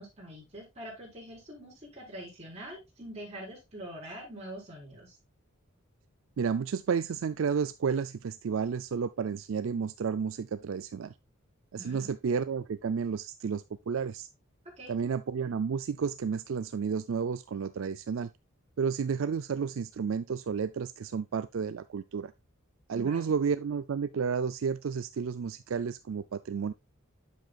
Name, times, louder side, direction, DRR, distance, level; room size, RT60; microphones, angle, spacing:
voice 1, 0.0-5.2 11.8-12.1 14.8-14.9 22.9-23.3, right 1 dB, 30° right, 4.9 m, -44 dB
voice 2, 6.4-11.1 11.7-14.3 14.9-18.3 18.8-22.3 22.9-26.7, right 6 dB, 70° right, 0.4 m, -31 dB
9.0 x 7.6 x 2.4 m
head